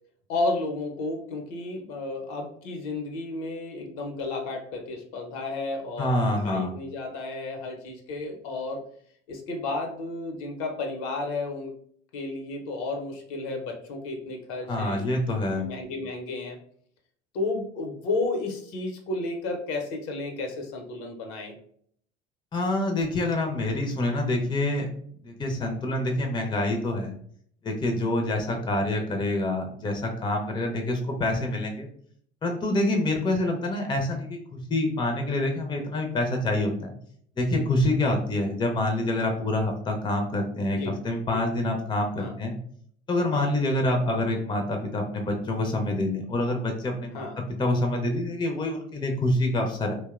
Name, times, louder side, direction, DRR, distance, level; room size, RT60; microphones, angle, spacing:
voice 1, 0.3-8.8 9.3-11.7 12.1-15.0 15.6-16.6 17.3-21.5 40.7-41.0 41.3-41.4 42.2-42.3 43.3-43.5 47.1-47.4, left 2 dB, 70° left, 3 dB, 0.7 m, -32 dB
voice 2, 6.0-6.7 14.6-15.6 22.5-24.9 25.2-27.1 27.6-31.9 32.4-36.9 37.4-42.6 43.1-47.3 47.6-49.9, left 1 dB, 15° left, 3 dB, 0.5 m, -26 dB
2.8 x 2.1 x 2.3 m, 0.62 s
hypercardioid pair, 65°, 35 cm